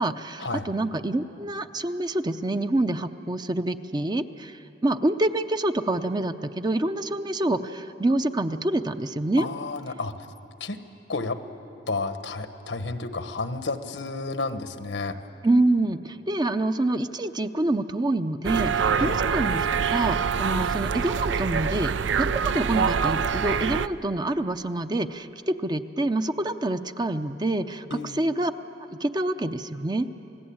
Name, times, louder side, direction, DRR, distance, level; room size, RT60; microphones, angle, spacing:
voice 1, 0.0-9.5 15.4-28.5 28.9-30.1, right 2 dB, 25° right, 9 dB, 0.6 m, -26 dB
voice 2, 9.4-10.1 10.6-10.8 11.1-11.4 11.9-15.2 19.0-19.2 27.9-28.3, left 3 dB, 80° left, 9 dB, 1.2 m, -31 dB
sound 1, 18.4-23.9, right 6 dB, 80° right, 0.5 m, -25 dB
28.0 x 19.0 x 8.7 m, 2.9 s
head